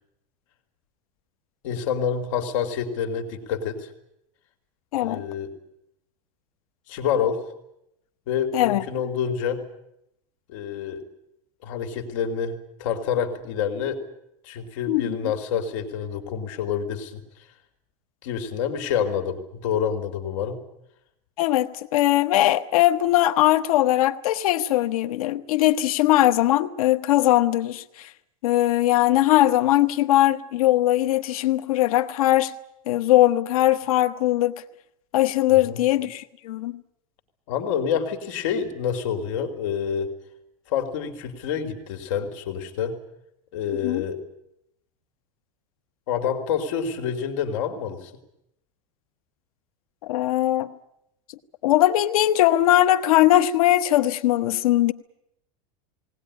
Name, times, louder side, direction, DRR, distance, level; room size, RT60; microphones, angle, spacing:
voice 1, 1.6-3.9 5.0-5.5 6.9-7.4 8.3-9.6 10.5-11.0 11.6-14.0 14.4-17.2 18.2-20.6 35.6-35.8 37.5-40.1 40.7-43.0 43.5-44.2 46.1-48.1, left 7 dB, 60° left, 3.0 m, -27 dB
voice 2, 21.4-28.1 28.4-32.5 32.9-34.6 35.1-36.8 43.8-44.0 50.1-50.7 51.6-54.9, left 14 dB, 75° left, 1.1 m, -20 dB
19.5 x 19.0 x 9.9 m
supercardioid pair, 170°, 18 cm